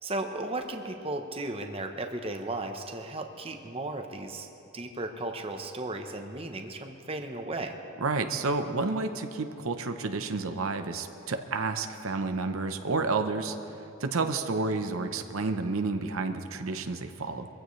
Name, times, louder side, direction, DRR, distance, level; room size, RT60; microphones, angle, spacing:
voice 1, 0.0-4.5 4.7-7.7, right 2 dB, 25° right, 5 dB, 0.8 m, -35 dB
voice 2, 8.0-13.6 14.0-17.5, right 3 dB, 75° right, 7 dB, 0.8 m, -30 dB
23.0 x 15.0 x 3.2 m, 3.0 s
head